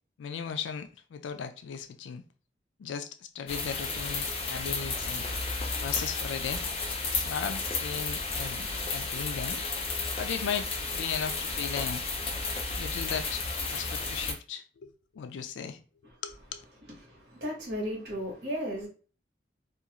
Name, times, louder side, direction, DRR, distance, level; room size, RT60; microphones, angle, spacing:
voice 1, 0.2-2.2 2.8-5.3 5.8-6.6 7.1-9.6 10.2-12.0 12.8-13.4 13.7-15.8 16.2-16.6, left 7 dB, 90° left, 0.3 m, -37 dB
sound 1, 3.5-14.3, left 3 dB, 30° left, 0.5 m, -33 dB
voice 2, 17.0-18.9, equal, 65° right, 1.1 m, -35 dB
2.5 x 2.3 x 2.8 m
head